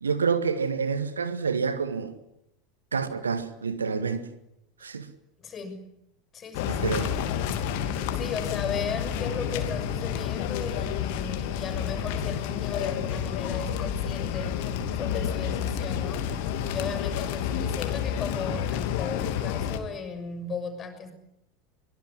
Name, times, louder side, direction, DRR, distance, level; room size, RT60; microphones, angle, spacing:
voice 1, 0.0-2.2 2.9-4.2 4.8-5.1 6.7-7.1, right 5 dB, 75° right, 1.9 m, -28 dB
voice 2, 5.4-5.9 6.3-7.0 8.1-14.6 14.9-16.3 16.7-21.1, left 5 dB, 30° left, 6.5 m, -36 dB
sound 1, 6.5-19.8, left 8 dB, 55° left, 2.9 m, -30 dB
24.0 x 22.0 x 9.9 m
figure-of-eight pair, 80°, 0 cm